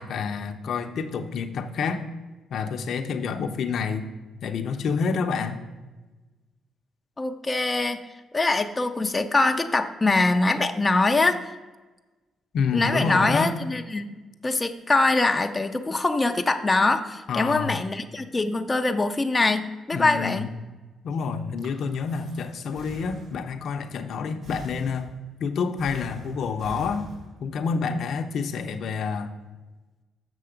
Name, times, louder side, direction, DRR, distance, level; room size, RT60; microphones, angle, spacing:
voice 1, 0.0-2.0 2.5-4.1 4.4-5.6 12.5-13.5 17.3-17.8 19.9-20.5 21.0-25.1 25.4-27.1 27.4-29.3, left 5 dB, 65° left, 7 dB, 0.6 m, -28 dB
voice 2, 7.2-8.0 8.3-11.5 12.7-20.5, left 3 dB, 20° left, 6 dB, 0.5 m, -23 dB
Breathing, 21.3-23.6 24.4-25.3 25.8-27.6, right 1 dB, 70° right, 1.7 m, -44 dB
6.8 x 6.3 x 5.0 m, 1.2 s
cardioid pair, 90°, 0 cm